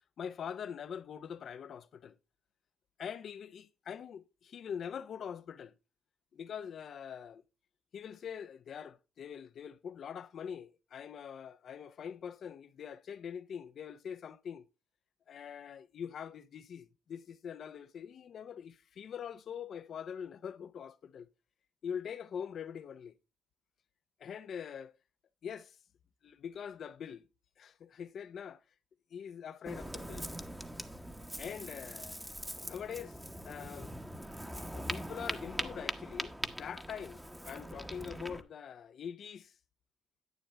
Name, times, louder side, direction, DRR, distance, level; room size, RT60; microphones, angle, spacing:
voice 1, 0.2-2.2 3.0-5.7 6.3-7.4 7.9-14.6 15.3-21.3 21.8-23.1 24.2-24.9 25.4-25.8 26.2-27.3 27.6-28.6 29.1-30.3 31.4-32.2 32.6-33.2 33.4-33.9 34.7-39.5, left 8 dB, 60° left, 0.7 m, -43 dB
Ocean, 29.7-38.4, equal, 5° right, 1.0 m, -42 dB
10.5 x 8.7 x 3.3 m
cardioid pair, 90°, 0 cm